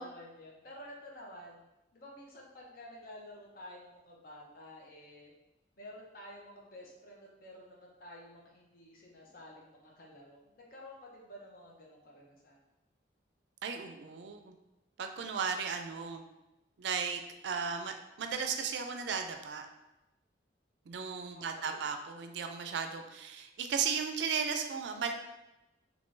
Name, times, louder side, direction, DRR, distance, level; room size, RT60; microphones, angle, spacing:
voice 1, 0.0-1.6 1.9-5.3 5.8-12.6 21.3-21.8, left 1 dB, 50° left, -2 dB, 0.7 m, -51 dB
voice 2, 13.6-14.5 15.0-16.2 16.8-19.6 20.9-25.1, right 6 dB, 70° right, 5 dB, 0.4 m, -35 dB
3.6 x 3.0 x 2.6 m, 0.96 s
head